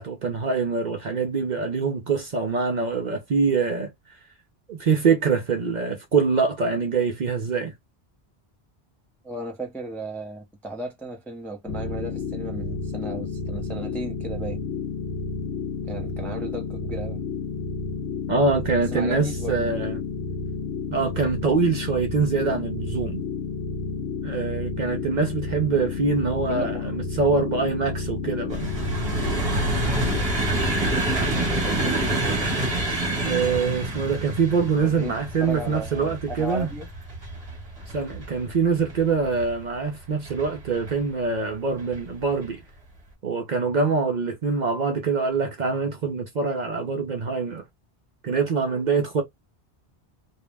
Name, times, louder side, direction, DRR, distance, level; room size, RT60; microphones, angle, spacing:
voice 1, 0.0-3.9 4.7-7.7 18.3-20.0 20.9-23.3 24.2-28.7 33.3-36.7 37.9-42.6 43.2-47.6 48.2-49.2, right 4 dB, 55° right, 0.6 m, -24 dB
voice 2, 9.2-14.6 15.9-17.2 18.9-19.7 26.5-26.9 34.8-36.9, right 1 dB, ahead, 0.4 m, -35 dB
sound 1, 11.7-30.2, left 4 dB, 80° left, 0.9 m, -31 dB
sound 2, 28.5-39.6 40.3-40.9 41.8-42.0 42.3-42.4, right 1 dB, 35° right, 1.1 m, -27 dB
2.6 x 2.0 x 3.3 m
omnidirectional pair, 1.1 m